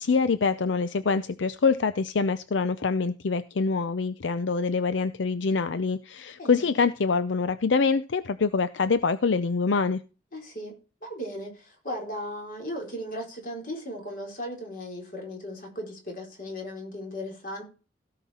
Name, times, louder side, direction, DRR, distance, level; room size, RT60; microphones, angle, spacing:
voice 1, 0.0-10.0, left 4 dB, 80° left, 0.6 m, -25 dB
voice 2, 6.4-6.7 10.3-10.8 11.0-17.6, equal, 50° left, 4.2 m, -37 dB
16.5 x 5.8 x 4.3 m
head